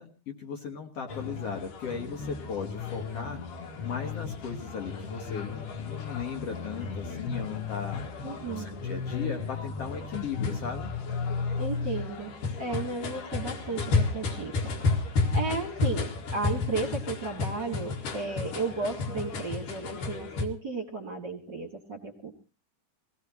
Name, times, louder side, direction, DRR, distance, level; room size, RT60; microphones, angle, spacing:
voice 1, 0.0-8.1 8.5-10.9, left 6 dB, 55° left, 3 dB, 2.1 m, -37 dB
sound 1, 1.1-20.5, left 4 dB, 80° left, 3.4 m, -32 dB
voice 2, 8.2-8.7 11.6-14.7 15.3-22.3, right 3 dB, 40° right, 2 dB, 2.0 m, -34 dB
22.0 x 17.0 x 3.0 m, 0.34 s
omnidirectional pair, 3.7 m